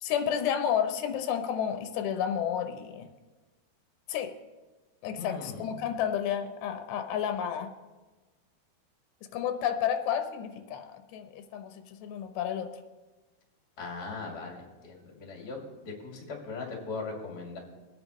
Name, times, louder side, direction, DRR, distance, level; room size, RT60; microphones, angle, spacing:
voice 1, 0.0-3.1 4.1-4.3 5.0-7.7 9.3-11.7 12.0-12.7, left 9 dB, 85° left, 6 dB, 3.0 m, -31 dB
voice 2, 5.1-5.9 13.8-17.6, left 4 dB, 30° left, -1 dB, 2.0 m, -39 dB
23.0 x 9.0 x 3.1 m, 1.2 s
omnidirectional pair, 4.8 m